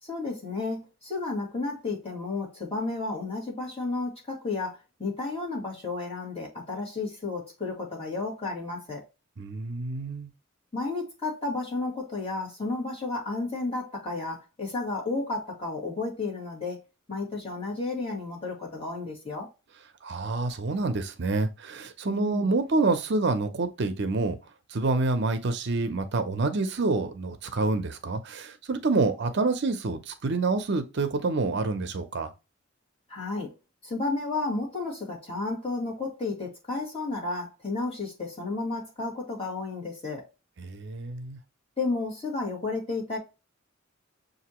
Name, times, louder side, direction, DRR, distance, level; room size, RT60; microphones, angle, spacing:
voice 1, 0.0-9.0 10.7-16.8 17.1-19.5 22.0-22.5 33.1-33.5 33.8-40.2 41.8-43.2, left 3 dB, 30° left, 2.0 m, -32 dB
voice 2, 9.4-10.3 20.0-24.4 24.7-32.3 40.6-41.4, right 3 dB, 60° right, 0.6 m, -27 dB
6.7 x 2.7 x 2.9 m
head